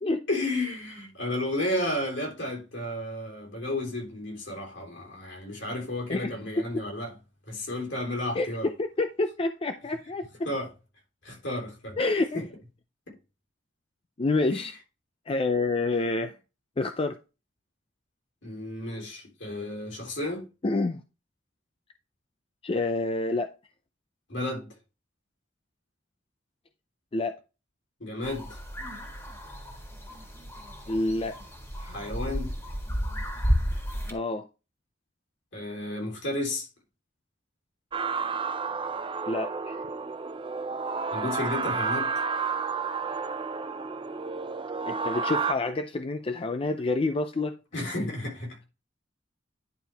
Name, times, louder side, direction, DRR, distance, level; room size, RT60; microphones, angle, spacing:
voice 1, 0.3-7.2 7.5-8.7 10.5-10.7 11.2-12.0 12.3-12.5 14.5-14.7 18.4-20.5 24.3-24.7 28.0-28.6 31.8-32.5 35.5-36.7 41.1-42.1 47.7-48.6, left 1 dB, 70° left, 3.5 m, -32 dB
voice 2, 8.3-10.3 12.0-12.4 14.2-14.7 15.3-16.3 16.8-17.2 20.6-21.0 22.6-23.5 27.1-27.4 30.9-31.4 34.1-34.5 39.3-39.8 44.9-47.5, left 2 dB, 30° left, 0.5 m, -28 dB
sound 1, 28.2-34.1, equal, 15° left, 1.7 m, -32 dB
sound 2, 37.9-45.5, right 5 dB, 25° right, 0.4 m, -31 dB
10.5 x 4.6 x 3.4 m
head